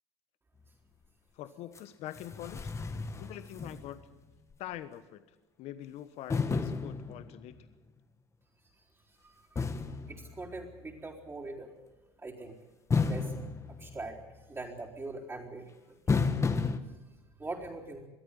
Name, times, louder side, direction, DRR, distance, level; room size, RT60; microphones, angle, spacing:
voice 1, 1.3-2.7 3.2-4.0 4.6-5.2 5.6-7.7, left 12 dB, 60° left, 11 dB, 1.2 m, -44 dB
sound 1, 1.8-1.9 2.1-4.2 4.5-4.6 6.3-7.6 9.6-11.0 12.9-14.4 16.1-16.8, left 4 dB, 25° left, 1.5 m, -32 dB
voice 2, 8.6-9.7 10.1-11.7 12.2-12.5 13.0-13.3 13.7-16.0 16.9-17.0 17.4-18.1, right 2 dB, 20° right, -5 dB, 4.0 m, -43 dB
22.5 x 13.5 x 10.0 m, 1.1 s
supercardioid pair, 90°, 13 cm